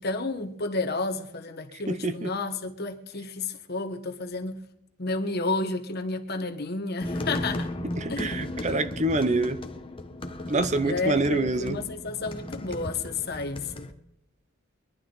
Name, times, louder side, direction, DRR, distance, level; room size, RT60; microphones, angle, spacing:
voice 1, 0.0-4.6 5.0-7.7 8.1-8.5 10.8-13.9, left 3 dB, 50° left, 1.4 m, -31 dB
voice 2, 1.9-2.3 8.0-9.6 10.5-11.8, right 2 dB, 35° right, 0.8 m, -26 dB
sound 1, 7.0-13.9, left 1 dB, 25° left, 1.2 m, -35 dB
23.0 x 11.5 x 4.0 m
head